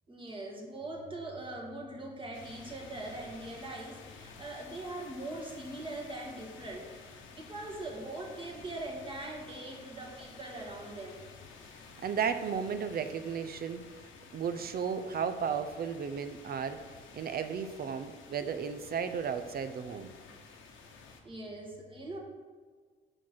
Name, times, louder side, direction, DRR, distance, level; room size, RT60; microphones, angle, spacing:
voice 1, 0.1-11.2 21.2-22.2, right 2 dB, 25° right, 0 dB, 1.7 m, -42 dB
sound 1, 2.3-21.2, left 4 dB, 80° left, 1.1 m, -52 dB
voice 2, 12.0-13.8 14.3-16.8 17.1-20.1, right 7 dB, 50° right, 10 dB, 0.6 m, -34 dB
5.8 x 5.0 x 6.1 m, 1.5 s
cardioid pair, 90°, 20 cm